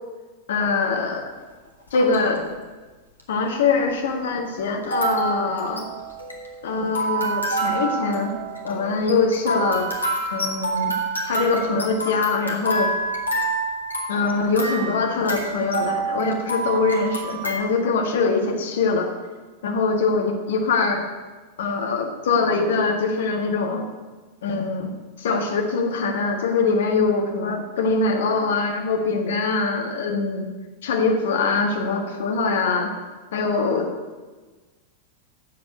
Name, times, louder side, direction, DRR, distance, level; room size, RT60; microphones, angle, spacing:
voice 1, 0.5-1.2 1.9-2.4 3.3-5.9 6.6-8.3 8.6-9.9 10.3-11.0 11.2-12.9 14.1-19.1 19.6-21.0 21.6-23.8 24.4-24.9 25.2-30.5 30.8-32.9 33.3-33.9, left 4 dB, 60° left, 3 dB, 1.6 m, -23 dB
sound 1, 1.9-2.4 3.2-3.3 4.8-17.6, right 2 dB, 85° left, 1.6 m, -27 dB
7.6 x 7.0 x 8.0 m, 1.3 s
figure-of-eight pair, 90°, 0 cm